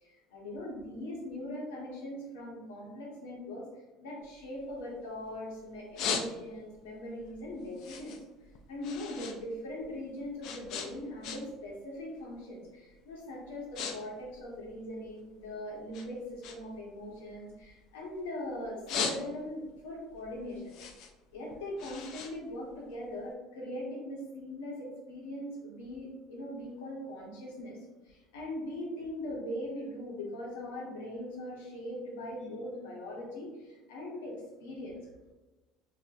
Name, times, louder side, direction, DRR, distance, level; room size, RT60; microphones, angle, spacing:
voice 1, 0.0-3.6 4.0-8.1 8.7-20.7 21.3-27.8 28.0-35.0, left 1 dB, 90° left, -3 dB, 1.0 m, -40 dB
sound 1, 4.2-5.3 5.7-6.8 7.2-9.4 9.7-11.7 12.0-12.3 12.9-13.1 13.4-14.0 14.2-15.5 15.9-18.2 18.6-19.7 20.1-23.2, left 6 dB, 65° left, 0.4 m, -38 dB
4.2 x 2.0 x 2.4 m, 1.1 s
supercardioid pair, 85°, 0 cm